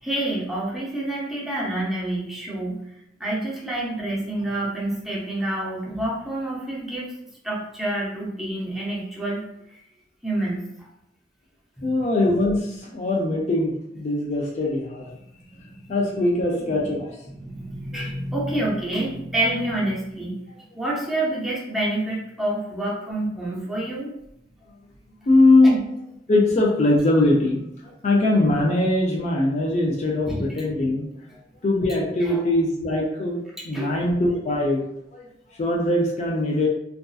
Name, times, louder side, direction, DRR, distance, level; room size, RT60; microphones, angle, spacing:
voice 1, 0.0-2.8 3.2-7.1 7.4-9.4 9.7-9.8 10.2-10.9 11.8-12.0 16.5-17.0 17.3-20.3 20.7-24.1 25.6-25.7 30.3-30.6 31.3-31.4 32.2-32.4 33.7-34.0, right 1 dB, ahead, -6 dB, 0.6 m, -28 dB
voice 2, 11.8-15.0 15.9-17.1 17.9-18.0 25.3-25.8 26.3-27.6 28.0-31.1 31.6-33.4 33.6-34.8 35.1-35.2 35.6-36.7, left 2 dB, 40° left, -2 dB, 0.4 m, -21 dB
2.6 x 2.3 x 2.3 m, 0.79 s
head